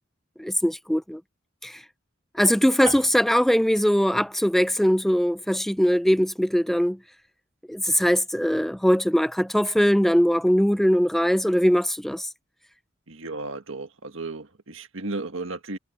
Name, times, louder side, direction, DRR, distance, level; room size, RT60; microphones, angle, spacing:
voice 1, 0.4-1.2 1.6-1.8 2.3-7.0 7.7-12.3, equal, ahead, 0.3 m, -21 dB
Piano, 2.9-6.8, right 3 dB, 35° right, 3.5 m, -44 dB
voice 2, 13.1-15.8, right 3 dB, 75° right, 1.7 m, -34 dB
head